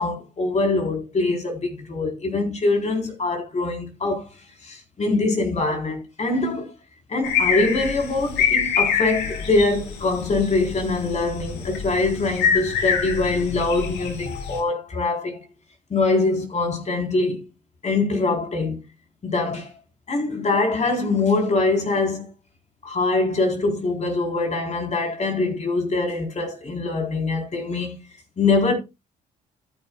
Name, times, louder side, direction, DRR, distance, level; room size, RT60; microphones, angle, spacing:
voice 1, 0.0-4.3 4.6-6.7 7.1-15.4 15.9-17.4 17.8-18.8 19.2-19.7 20.1-22.3 22.8-28.0 28.4-28.7, left 3 dB, 45° left, 4.0 m, -23 dB
sound 1, 7.2-14.6, left 7 dB, 85° left, 2.1 m, -26 dB
13.5 x 9.8 x 2.3 m
supercardioid pair, 65°, 17 cm